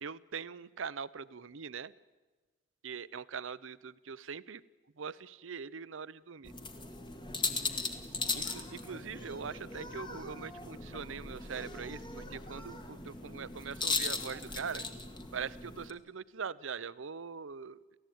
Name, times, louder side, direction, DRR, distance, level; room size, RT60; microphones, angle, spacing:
voice 1, 0.0-1.9 2.8-4.6 5.0-6.5 8.3-14.9 15.3-18.0, right 6 dB, 85° right, 17 dB, 0.7 m, -42 dB
sound 1, 6.4-15.9, left 3 dB, 25° left, 1.7 m, -38 dB
sound 2, 8.4-14.0, left 1 dB, 60° left, 6.7 m, -57 dB
30.0 x 15.0 x 9.3 m, 1.2 s
head